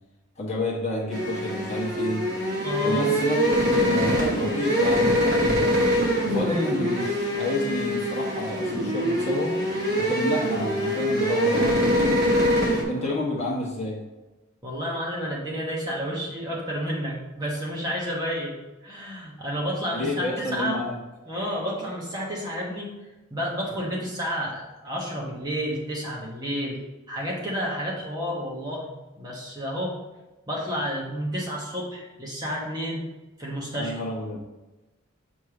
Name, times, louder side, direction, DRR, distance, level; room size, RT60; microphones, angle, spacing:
voice 1, 0.4-2.2 2.8-5.8 6.3-9.6 10.0-12.1 12.8-14.0 19.9-21.0 33.8-34.4, left 2 dB, 30° left, -4 dB, 1.3 m, -30 dB
sound 1, 1.1-12.8, equal, 50° right, 1.2 m, -24 dB
voice 2, 2.6-3.1 12.9-13.1 14.6-20.8 21.3-22.9 23.3-26.8 27.1-28.9 29.2-30.0 30.5-33.1 33.4-33.9, equal, 20° right, -4 dB, 1.0 m, -30 dB
6.6 x 3.0 x 4.8 m, 1.1 s
head